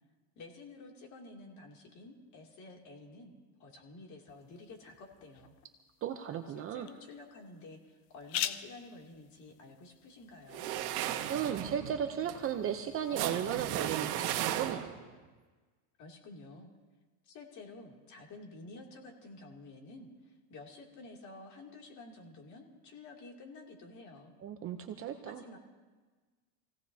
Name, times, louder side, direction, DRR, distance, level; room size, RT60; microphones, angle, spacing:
voice 1, 0.3-3.3 3.6-5.5 6.5-10.7 16.0-16.7 17.2-24.3 25.2-25.6, left 2 dB, 35° left, 0 dB, 2.8 m, -51 dB
sound 1, 4.3-11.8, left 12 dB, 60° left, 0.9 m, -44 dB
voice 2, 6.0-6.9 11.3-14.9 24.4-25.4, right 9 dB, 30° right, 7 dB, 0.7 m, -35 dB
sound 2, 10.5-15.1, right 12 dB, 75° right, 1.5 m, -36 dB
27.0 x 17.0 x 2.8 m, 1.3 s
supercardioid pair, 140°, 48 cm